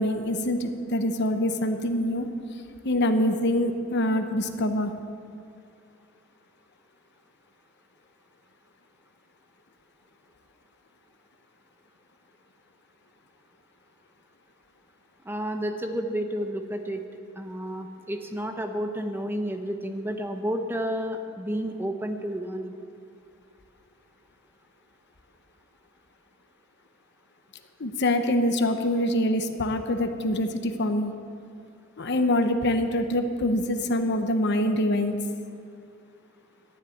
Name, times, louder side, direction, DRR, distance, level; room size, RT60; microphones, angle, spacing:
voice 1, 0.0-2.3 2.8-4.9 27.8-31.1 32.0-35.2, left 1 dB, 55° left, 7 dB, 0.9 m, -25 dB
voice 2, 15.2-17.0 17.4-22.7, equal, 10° right, 5 dB, 0.8 m, -31 dB
12.5 x 7.4 x 9.5 m, 2.3 s
head